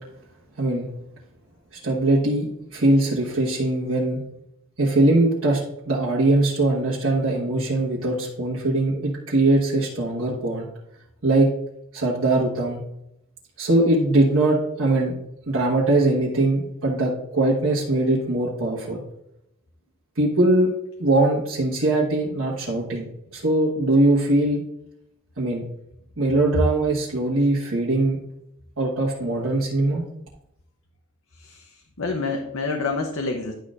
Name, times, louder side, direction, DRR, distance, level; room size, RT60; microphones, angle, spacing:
voice 1, 0.6-0.9 1.8-4.2 4.8-5.6 5.9-10.7 11.2-11.5 11.9-12.8 13.6-15.1 15.5-19.0 20.1-20.7 21.0-23.0 23.3-24.6 25.4-25.6 26.2-28.2 28.8-30.0, right 2 dB, 70° right, -5 dB, 1.4 m, -21 dB
voice 2, 31.4-33.5, left 3 dB, 65° left, 2 dB, 0.8 m, -28 dB
11.0 x 6.3 x 2.5 m, 0.80 s
head